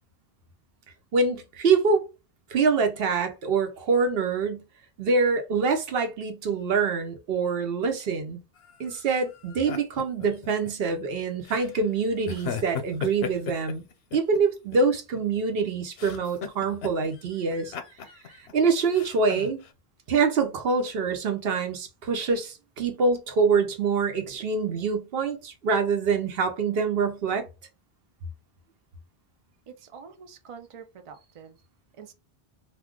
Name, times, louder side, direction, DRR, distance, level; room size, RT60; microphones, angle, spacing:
voice 1, 1.1-2.0 2.5-4.6 5.0-8.4 8.8-13.8 14.1-17.7 18.5-19.6 20.1-27.5, right 4 dB, 70° right, 0.9 m, -25 dB
sound 1, 8.6-10.7 11.4-11.7 12.3-14.4 14.7-15.6 16.0-17.2 17.5-18.5 18.9-19.7, left 7 dB, 90° left, 0.8 m, -37 dB
voice 2, 29.9-31.5 32.0-32.1, right 6 dB, 50° right, 0.4 m, -45 dB
2.4 x 2.2 x 3.6 m
omnidirectional pair, 1.0 m